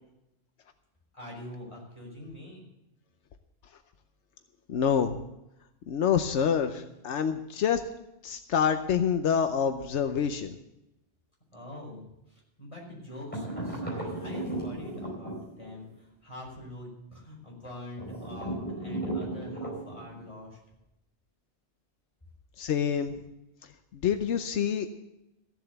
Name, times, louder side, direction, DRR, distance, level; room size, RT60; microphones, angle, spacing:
voice 1, 1.1-2.6 11.5-20.6, left 1 dB, 25° left, -3 dB, 5.1 m, -44 dB
voice 2, 4.7-5.2 5.9-7.8 8.2-10.6 22.6-23.2 23.9-24.9, left 7 dB, 85° left, 8 dB, 1.1 m, -27 dB
sound 1, 13.3-15.9 18.0-20.2, right 2 dB, 10° left, 4.5 m, -35 dB
15.0 x 7.6 x 7.9 m, 0.88 s
omnidirectional pair, 1.2 m